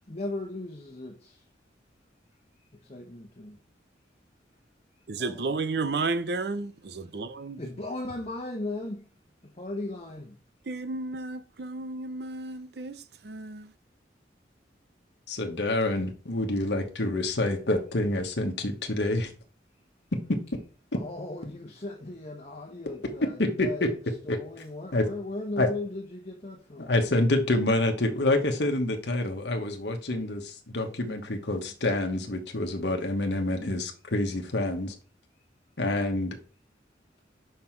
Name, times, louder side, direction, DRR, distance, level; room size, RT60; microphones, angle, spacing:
voice 1, 0.1-1.4 2.7-3.6 5.2-5.5 7.6-9.1 9.4-10.4 20.9-24.0 24.2-26.9, left 2 dB, 35° left, 1.0 m, -37 dB
voice 2, 5.1-7.6 10.6-13.7, right 3 dB, 65° right, 0.6 m, -32 dB
voice 3, 15.3-19.3 23.4-23.7 24.3-24.4 24.9-25.0 25.6-25.7 26.8-34.9 35.8-36.4, left 2 dB, 75° left, 1.1 m, -27 dB
5.7 x 5.7 x 4.5 m
head